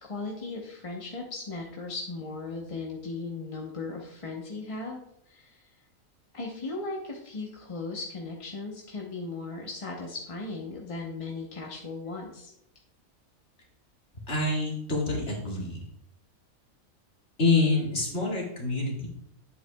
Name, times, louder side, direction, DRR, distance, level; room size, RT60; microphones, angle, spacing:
voice 1, 0.0-5.0 5.3-5.6 6.3-12.5, left 3 dB, 30° left, -1 dB, 0.8 m, -37 dB
voice 2, 14.3-15.8 17.4-19.1, left 3 dB, 50° left, -3 dB, 2.3 m, -26 dB
9.8 x 7.9 x 2.3 m, 0.77 s
omnidirectional pair, 1.4 m